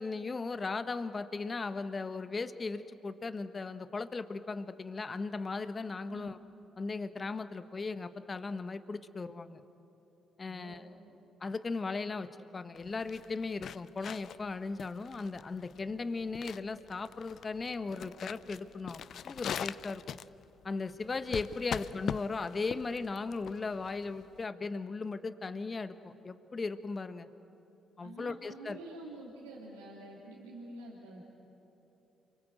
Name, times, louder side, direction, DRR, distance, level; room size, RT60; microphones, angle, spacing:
voice 1, 0.0-6.4 6.8-9.6 10.4-10.9 11.4-20.2 20.6-27.3 28.0-28.8, left 4 dB, 35° left, 11 dB, 1.4 m, -37 dB
voice 2, 10.4-11.0 28.0-31.2, right 2 dB, 90° right, -5 dB, 2.8 m, -48 dB
sound 1, 12.8-24.4, left 8 dB, 60° left, 0.5 m, -42 dB
29.0 x 23.5 x 7.9 m, 3.0 s
hypercardioid pair, 45°, 0 cm